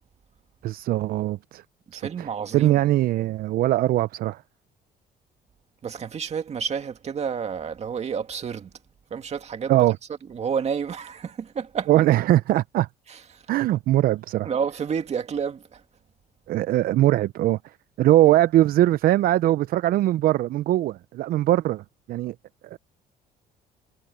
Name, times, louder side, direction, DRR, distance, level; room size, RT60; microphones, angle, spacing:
voice 1, 0.6-1.6 1.9-2.3 2.5-4.4 9.7-10.0 11.9-12.9 13.5-14.5 16.5-17.6 18.0-22.3 22.7-22.8, right 14 dB, 60° right, 0.4 m, -21 dB
voice 2, 1.9-2.8 5.8-8.7 9.1-9.8 10.3-12.0 13.1-13.4 14.4-15.8, right 6 dB, 40° right, 2.1 m, -30 dB
cardioid pair, 110°, 17 cm